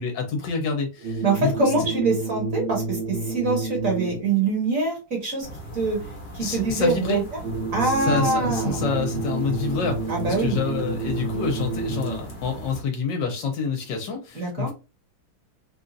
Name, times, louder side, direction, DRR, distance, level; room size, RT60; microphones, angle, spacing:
voice 1, 0.0-1.7 6.4-7.2 7.8-14.7, left 5 dB, 70° left, 1.3 m, -27 dB
sound 1, 1.0-4.4 7.4-12.4, right 3 dB, 85° right, 2.1 m, -30 dB
voice 2, 1.2-5.5 5.7-6.0 6.3-7.4 7.7-8.9 10.1-10.6 14.3-14.7, right 3 dB, 45° right, 1.5 m, -24 dB
sound 2, 5.4-12.8, right 1 dB, 40° left, 1.0 m, -38 dB
4.0 x 2.4 x 2.5 m
omnidirectional pair, 2.2 m